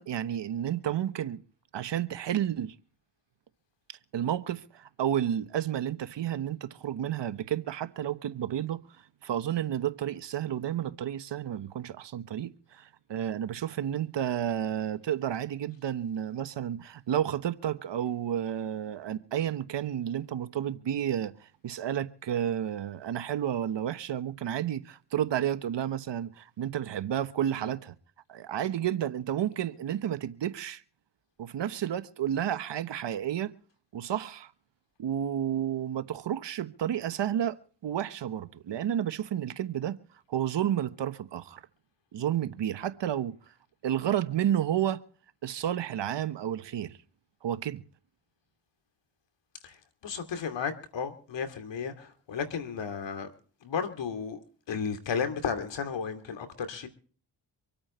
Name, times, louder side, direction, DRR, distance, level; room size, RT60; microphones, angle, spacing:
voice 1, 0.0-1.4 1.7-2.7 4.1-27.9 28.3-30.8 31.4-33.5 33.9-34.5 35.0-40.0 40.3-41.6 42.1-43.5 43.8-45.0 45.4-47.0 47.4-47.8, right 10 dB, 75° right, 1.2 m, -31 dB
voice 2, 50.0-53.3 53.6-54.4 54.7-56.9, left 6 dB, 80° left, 2.7 m, -33 dB
25.5 x 8.8 x 4.3 m
cardioid pair, 65°, 43 cm